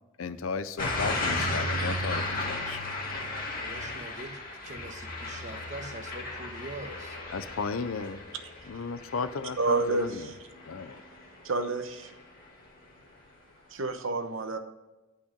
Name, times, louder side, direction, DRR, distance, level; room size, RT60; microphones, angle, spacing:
voice 1, 0.2-2.8 7.3-8.2 8.6-10.3 10.7-11.0, left 4 dB, 80° left, 0.6 m, -35 dB
sound 1, 0.8-11.6 12.0-12.4, left 2 dB, 45° left, 2.3 m, -35 dB
voice 2, 3.6-4.4 4.6-7.2, right 1 dB, 40° right, 1.1 m, -43 dB
voice 3, 9.6-10.0 11.4-12.1 13.7-14.6, right 3 dB, 70° right, 1.0 m, -28 dB
11.0 x 5.7 x 5.1 m
head